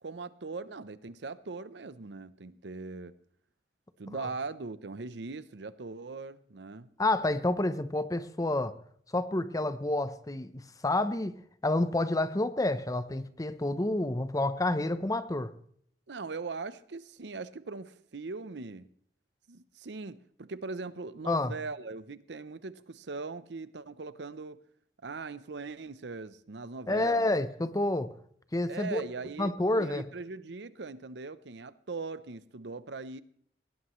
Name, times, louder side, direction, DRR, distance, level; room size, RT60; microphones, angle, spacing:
voice 1, 0.0-3.1 4.0-6.9 16.1-18.9 19.5-24.6 25.0-27.3 28.7-33.2, right 4 dB, 70° right, 15 dB, 0.7 m, -40 dB
voice 2, 7.0-8.7 9.1-15.5 21.3-21.5 26.9-28.1 28.5-29.0 29.4-30.1, left 2 dB, 20° left, 13 dB, 0.7 m, -29 dB
19.5 x 17.0 x 3.2 m, 0.63 s
head